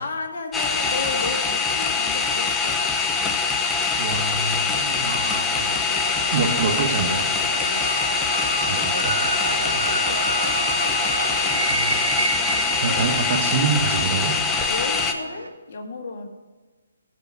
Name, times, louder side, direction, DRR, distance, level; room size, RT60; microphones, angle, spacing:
voice 1, 0.0-2.8 7.6-8.0 9.4-11.0 14.7-16.3, left 3 dB, 55° left, 3 dB, 2.0 m, -34 dB
sound 1, 0.5-15.1, left 5 dB, 10° left, 0.9 m, -23 dB
voice 2, 4.0-5.7 6.3-7.2 8.7-9.2 9.7-9.9 11.7-11.9 12.7-14.4, right 4 dB, 45° right, 4 dB, 1.6 m, -26 dB
sound 2, 5.5-15.5, right 3 dB, 80° right, 1.3 m, -30 dB
13.5 x 5.3 x 6.2 m, 1.3 s
figure-of-eight pair, 140°, 0 cm